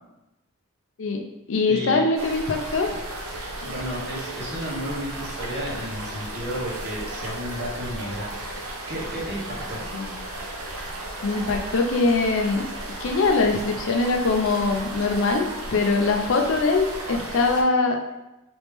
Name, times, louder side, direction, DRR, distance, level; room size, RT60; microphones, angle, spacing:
voice 1, 1.0-3.0 9.9-10.1 11.2-12.6 13.0-18.2, left 3 dB, 60° left, 4 dB, 0.4 m, -22 dB
voice 2, 1.7-2.0 3.6-9.8, equal, 50° right, -6 dB, 1.3 m, -33 dB
sound 1, 2.2-17.6, right 1 dB, 85° right, 0.7 m, -35 dB
3.3 x 3.0 x 3.4 m, 0.97 s
head